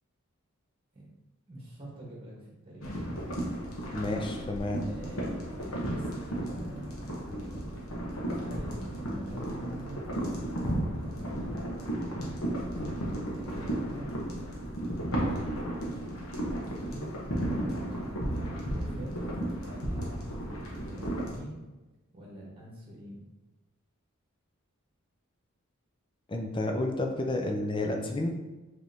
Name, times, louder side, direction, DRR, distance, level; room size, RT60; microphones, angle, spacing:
voice 1, 1.5-3.0 3.9-4.3 4.8-5.2 5.5-12.0 12.5-14.7 15.7-16.2 16.4-17.1 17.7-19.2 19.6-21.6 22.1-23.2, right 1 dB, 25° right, -4 dB, 1.2 m, -45 dB
sound 1, 2.8-21.4, right 1 dB, 70° left, 1.0 m, -34 dB
voice 2, 3.9-4.8 26.3-28.3, left 2 dB, 25° left, 3 dB, 0.4 m, -30 dB
5.0 x 3.1 x 2.7 m, 1.1 s
head